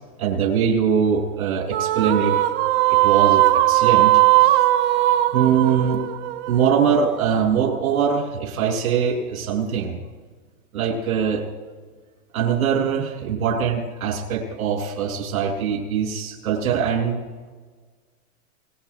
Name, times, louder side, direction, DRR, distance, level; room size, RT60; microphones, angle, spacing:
voice 1, 0.2-2.4 2.9-4.1 4.4-4.6 5.3-6.0 6.5-10.0 10.7-11.5 12.3-17.2, right 7 dB, 70° right, 3 dB, 5.8 m, -22 dB
sound 1, 1.7-7.1, right 16 dB, 25° right, 0.6 m, -18 dB
27.5 x 21.0 x 2.3 m, 1.5 s
hypercardioid pair, 135°, 43 cm